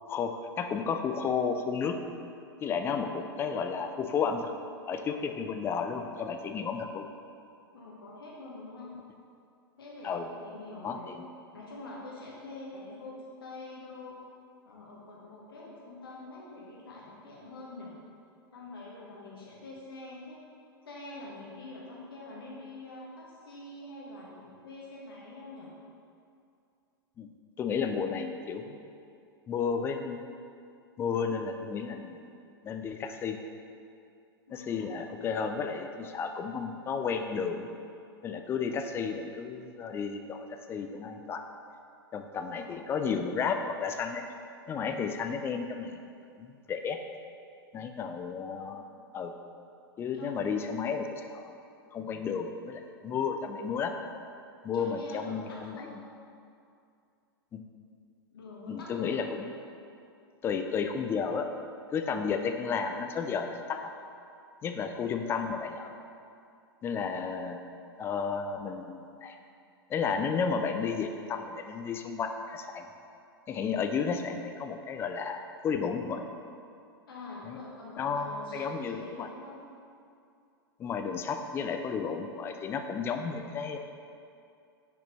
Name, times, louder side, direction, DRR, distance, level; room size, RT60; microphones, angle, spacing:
voice 1, 0.1-2.0 2.6-4.5 4.9-7.0 10.0-10.3 10.8-11.3 27.2-27.3 27.6-28.8 29.5-30.3 31.0-32.3 32.6-33.4 34.5-37.7 38.2-41.4 42.1-44.2 44.7-46.1 46.4-47.0 47.7-48.9 49.1-49.3 50.0-51.6 51.9-53.9 54.6-55.8 57.5-57.6 58.7-59.5 60.4-61.5 61.9-63.9 64.6-65.9 66.8-67.6 68.0-69.4 69.9-72.9 73.5-76.2 77.4-77.6 78.0-79.3 80.8-83.8, left 6 dB, 20° left, 6 dB, 0.3 m, -32 dB
voice 2, 7.7-8.9 9.8-11.1 11.5-14.2 14.6-18.0 18.5-20.4 20.8-25.7 34.5-34.9 42.5-42.8 48.4-48.8 50.1-50.8 54.7-55.9 58.3-59.3 77.1-79.6, left 2 dB, 65° left, -4 dB, 1.0 m, -45 dB
6.2 x 5.1 x 3.0 m, 2.5 s
figure-of-eight pair, 95°, 13 cm